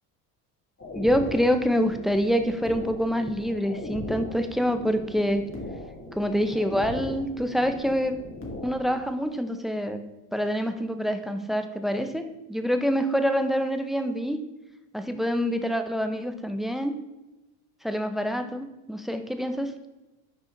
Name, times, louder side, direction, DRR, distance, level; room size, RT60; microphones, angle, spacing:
sound 1, 0.8-8.9, left 1 dB, 25° left, 2.2 m, -38 dB
voice 1, 0.9-5.4 6.2-8.2 8.6-10.0 10.3-12.2 12.5-14.4 14.9-17.0 17.8-19.7, equal, ahead, 8 dB, 0.6 m, -26 dB
6.6 x 4.9 x 5.1 m, 1.0 s
hypercardioid pair, 75°, 46 cm